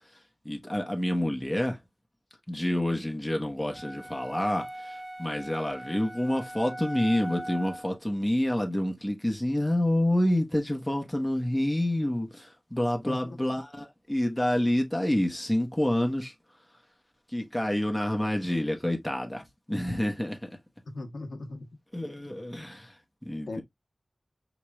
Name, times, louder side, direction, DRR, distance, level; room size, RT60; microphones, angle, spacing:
voice 1, 0.4-1.8 2.5-16.3 17.3-20.5 21.9-22.9 23.2-23.6, left 1 dB, 5° left, 1.1 m, -28 dB
sound 1, 3.7-8.0, right 1 dB, 55° right, 1.6 m, -40 dB
voice 2, 13.1-13.6 20.9-21.7 23.5-23.6, left 2 dB, 85° left, 0.9 m, -39 dB
4.7 x 3.1 x 2.3 m
wide cardioid pair, 80°, 0 cm